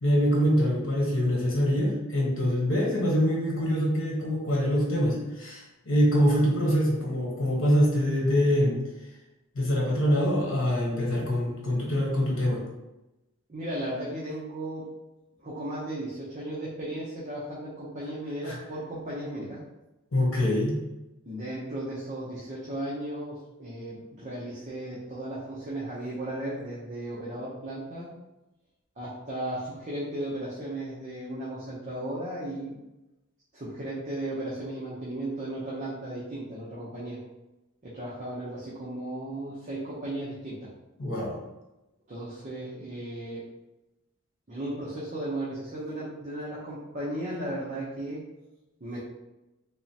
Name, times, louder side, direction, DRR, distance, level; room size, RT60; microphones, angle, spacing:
voice 1, 0.0-8.8 9.5-12.6 18.4-18.6 20.1-20.8 41.0-41.4, equal, 70° left, -3 dB, 1.2 m, -24 dB
voice 2, 13.5-14.9 15.4-19.6 21.3-28.1 29.0-32.8 33.5-37.2 37.8-40.7 42.1-43.4 44.5-48.2 48.8-49.0, right 1 dB, 35° right, -7 dB, 0.7 m, -35 dB
3.6 x 3.0 x 2.8 m, 0.99 s
head